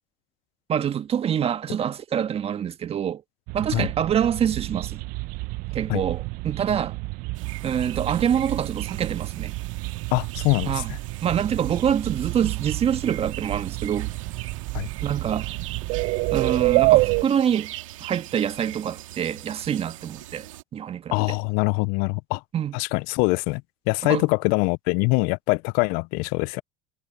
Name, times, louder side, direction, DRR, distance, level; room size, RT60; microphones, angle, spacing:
voice 1, 0.7-3.2 3.5-5.0 5.7-7.0 7.6-9.5 10.7-10.9 11.2-14.1 15.0-15.5 16.3-17.7 18.0-20.5 20.7-21.2 22.5-22.8 24.0-24.3, right 9 dB, 40° right, 1.7 m, -25 dB
sound 1, 3.5-17.2, right 23 dB, 60° right, 0.8 m, -28 dB
sound 2, 7.3-20.6, right 15 dB, 85° right, 2.8 m, -41 dB
voice 2, 10.1-10.8 14.7-14.9 21.1-22.4 22.7-23.6 23.9-26.6, left 29 dB, 65° left, 0.4 m, -23 dB
hypercardioid pair, 85°, 16 cm